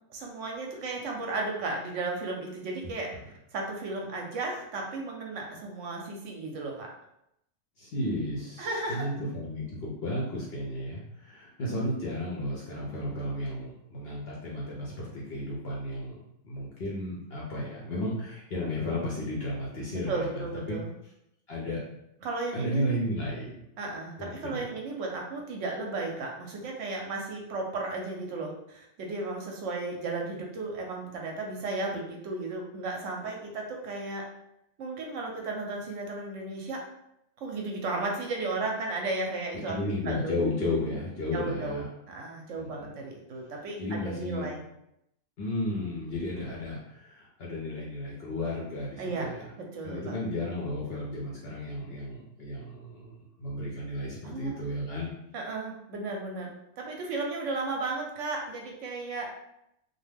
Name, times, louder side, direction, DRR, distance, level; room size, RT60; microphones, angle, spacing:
voice 1, 0.1-3.1 3.5-6.9 8.6-9.1 19.9-20.9 22.2-22.9 23.8-34.2 34.8-36.8 37.4-39.7 40.0-40.4 41.3-41.8 42.1-44.6 49.0-49.3 49.5-50.2 54.2-54.6 55.3-59.3, right 3 dB, 65° right, 0 dB, 0.8 m, -34 dB
voice 2, 7.8-20.8 21.5-21.8 22.5-23.6 24.2-24.7 39.7-41.9 42.5-42.9 43.8-44.5 45.4-49.5 49.8-55.1, left 1 dB, 60° left, -5 dB, 0.6 m, -33 dB
2.5 x 2.2 x 3.3 m, 0.81 s
omnidirectional pair, 1.6 m